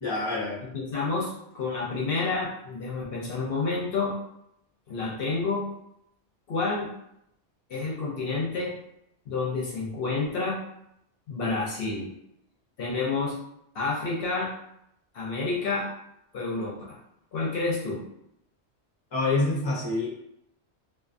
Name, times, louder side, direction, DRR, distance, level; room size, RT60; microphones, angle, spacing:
voice 1, 0.0-0.6 19.1-20.1, left 2 dB, 30° left, -4 dB, 0.6 m, -26 dB
voice 2, 0.6-4.2 4.9-5.7 6.5-6.9 7.7-8.7 9.3-10.6 11.3-12.1 12.8-13.3 13.7-14.5 15.1-15.9 16.3-17.0 17.3-18.0, left 3 dB, 60° left, -4 dB, 0.8 m, -29 dB
2.4 x 2.3 x 2.5 m, 0.77 s
omnidirectional pair, 1.2 m